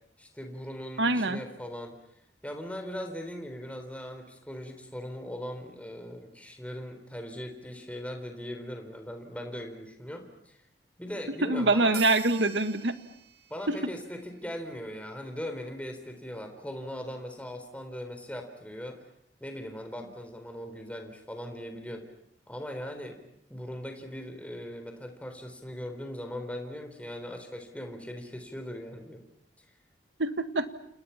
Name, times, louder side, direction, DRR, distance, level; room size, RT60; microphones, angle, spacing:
voice 1, 0.2-1.9 2.4-10.6 11.0-12.0 13.5-19.0 19.4-22.1 22.5-23.2 23.5-29.2 29.6-29.7, equal, 10° left, 5 dB, 3.9 m, -39 dB
voice 2, 1.0-1.4 11.4-13.0 13.7-13.8 30.2-30.7, right 2 dB, 85° right, 10 dB, 1.8 m, -25 dB
sound 1, 11.9-15.0, right 11 dB, 60° right, 2.2 m, -47 dB
29.0 x 29.0 x 5.9 m, 0.74 s
head